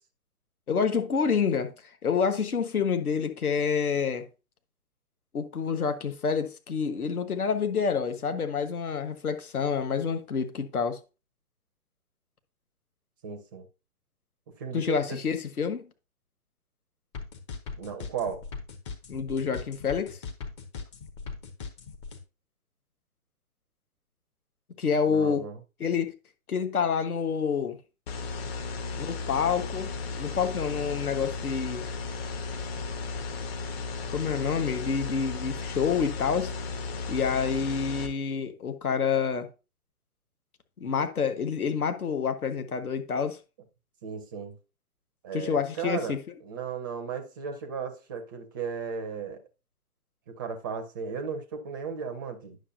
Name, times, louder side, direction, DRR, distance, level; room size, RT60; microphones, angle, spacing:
voice 1, 0.7-1.7 2.0-4.3 5.3-11.0 14.7-15.9 19.1-20.2 24.8-25.5 25.8-26.1 26.5-27.8 29.0-29.9 30.2-31.9 34.1-36.5 37.1-39.5 40.8-43.4 45.3-46.2, left 6 dB, 70° left, 1.5 m, -28 dB
voice 2, 13.2-13.7 14.6-15.2 17.8-18.4 25.1-25.6 44.0-44.5 45.2-46.1 46.4-49.4 50.3-52.6, right 6 dB, 15° right, 0.5 m, -35 dB
sound 1, 17.1-22.2, left 5 dB, 20° left, 0.7 m, -39 dB
sound 2, 28.1-38.1, left 4 dB, 40° left, 1.5 m, -35 dB
9.9 x 6.4 x 2.7 m
figure-of-eight pair, 135°, 46 cm